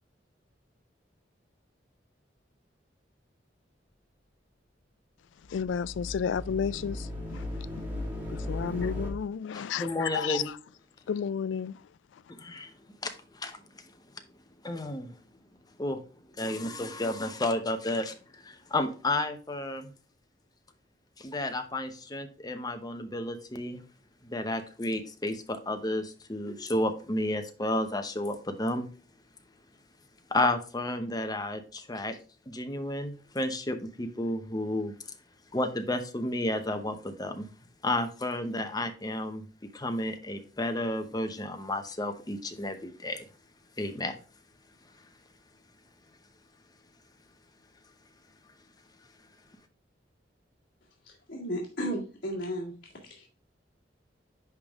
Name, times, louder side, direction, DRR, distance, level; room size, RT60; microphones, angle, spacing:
sound 1, 5.4-9.1, left 1 dB, 10° right, 1.9 m, -37 dB
voice 1, 5.5-7.5 8.5-10.4 11.1-11.8, left 7 dB, 85° left, 0.3 m, -32 dB
voice 2, 9.5-10.5 12.4-12.7 13.0-13.9 14.6-15.1 15.8-16.0 16.3-19.9 21.2-23.8 24.2-28.9 30.3-32.2 32.5-34.9 35.5-37.5 37.8-39.4 39.7-43.3 43.8-44.2, left 1 dB, 20° left, 0.8 m, -32 dB
voice 3, 51.3-52.7 53.0-53.3, equal, 55° left, 2.0 m, -34 dB
10.5 x 3.5 x 3.5 m
head